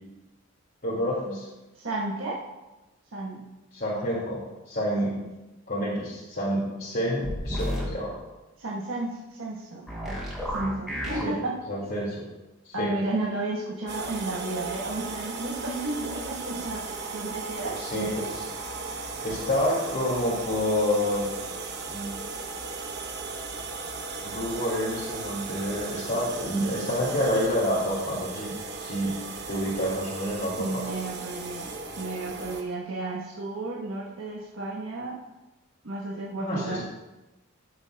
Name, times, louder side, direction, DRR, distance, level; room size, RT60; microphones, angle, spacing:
voice 1, 0.8-1.5 3.7-5.2 5.7-8.2 11.2-11.4 11.7-12.2 12.6-12.9 17.6-18.5 19.2-21.3 21.9-22.1 24.2-29.2 29.5-30.8 36.4-36.8, equal, 50° left, -8 dB, 2.1 m, -28 dB
voice 2, 1.7-2.4 3.1-3.5 5.0-5.1 8.6-11.6 12.7-17.8 30.6-35.2 35.8-36.8, right 2 dB, 80° right, -3 dB, 1.2 m, -33 dB
sound 1, 7.2-7.9 9.9-11.2, equal, ahead, 2.8 m, -31 dB
sound 2, 13.9-32.6, right 4 dB, 50° right, 0.9 m, -36 dB
14.5 x 7.0 x 2.2 m, 1.1 s
head